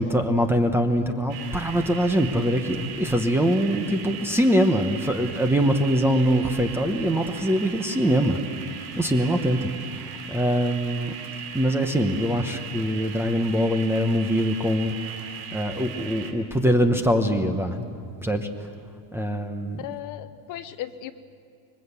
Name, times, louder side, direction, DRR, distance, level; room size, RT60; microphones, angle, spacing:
voice 1, 0.0-8.4 9.0-9.7 10.3-11.1 11.5-15.0 15.5-17.8 18.2-18.5 19.1-19.8, equal, 5° right, 6 dB, 0.8 m, -23 dB
sound 1, 1.3-16.3, right 7 dB, 70° right, 3.5 m, -39 dB
voice 2, 19.8-21.1, left 12 dB, 40° left, 11 dB, 0.8 m, -36 dB
25.5 x 22.0 x 8.2 m, 2.2 s
cardioid pair, 170°, 49 cm